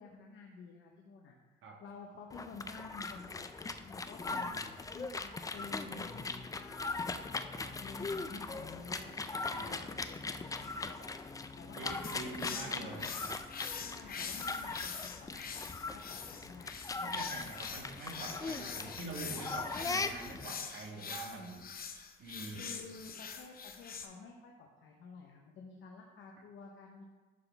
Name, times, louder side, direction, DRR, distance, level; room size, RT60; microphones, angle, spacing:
voice 1, 0.0-4.6 4.9-7.5 7.8-11.1 11.6-12.1 12.5-13.1 13.8-16.7 22.5-27.0, left 4 dB, 80° left, 0 dB, 0.9 m, -51 dB
sound 1, 2.3-20.5, left 3 dB, 15° left, 0.4 m, -40 dB
voice 2, 4.3-4.6 7.5-7.8 9.5-9.9 11.7-13.4 17.0-21.7 22.2-22.8, right 3 dB, 75° right, 1 dB, 1.4 m, -45 dB
sound 2, 12.0-24.1, left 6 dB, 50° left, 0.7 m, -44 dB
11.5 x 4.0 x 3.4 m, 1.3 s
cardioid pair, 90°, 20 cm